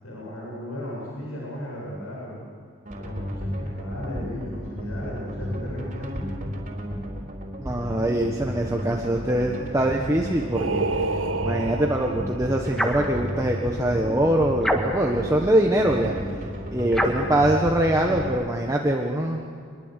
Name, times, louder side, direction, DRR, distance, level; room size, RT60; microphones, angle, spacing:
voice 1, 0.0-2.4 3.0-6.2, left 1 dB, 75° left, -4 dB, 7.9 m, -36 dB
sound 1, 2.9-18.3, equal, 35° right, 4.2 m, -33 dB
voice 2, 7.6-10.9 11.4-16.1 16.7-19.4, right 1 dB, 15° right, 0 dB, 1.3 m, -23 dB
Singing, 10.5-12.6, right 3 dB, 65° right, 1.5 m, -28 dB
sound 2, 12.7-13.1 14.6-15.2 16.9-17.3, equal, ahead, 1.8 m, -25 dB
26.0 x 22.0 x 8.3 m, 2.2 s
head